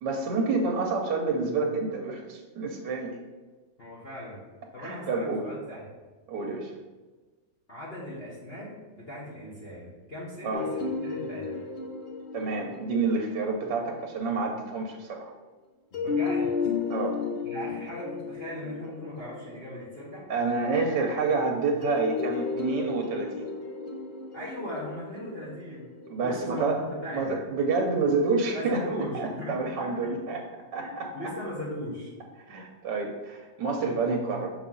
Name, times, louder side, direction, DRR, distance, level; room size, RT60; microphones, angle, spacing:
voice 1, 0.0-3.2 4.8-5.5 6.3-6.7 10.4-10.7 12.3-15.3 16.9-17.2 20.3-23.5 26.1-26.8 27.1-28.9 29.1-30.4 30.7-31.1 32.5-34.5, right 4 dB, 70° right, 1 dB, 1.3 m, -28 dB
voice 2, 3.8-4.4 4.7-5.8 7.7-11.6 15.9-16.5 17.4-20.2 24.3-25.9 26.2-27.3 28.5-29.9 30.8-32.1, left 1 dB, 35° left, -7 dB, 1.2 m, -38 dB
sound 1, 10.5-14.4 15.9-20.4 21.8-27.0, left 4 dB, 55° left, 0.7 m, -34 dB
6.6 x 4.1 x 3.8 m, 1.3 s
omnidirectional pair, 2.1 m